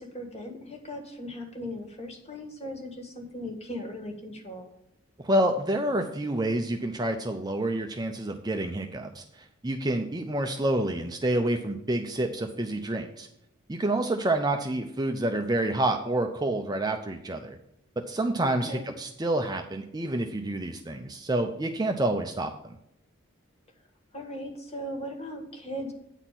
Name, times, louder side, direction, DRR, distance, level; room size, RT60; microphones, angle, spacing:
voice 1, 0.0-4.7 18.4-18.8 24.1-25.9, equal, 30° left, 3 dB, 1.7 m, -38 dB
voice 2, 5.2-9.2 9.6-13.3 13.7-17.6 18.0-22.7, right 1 dB, 20° right, 4 dB, 0.5 m, -28 dB
9.0 x 4.3 x 7.4 m, 0.78 s
head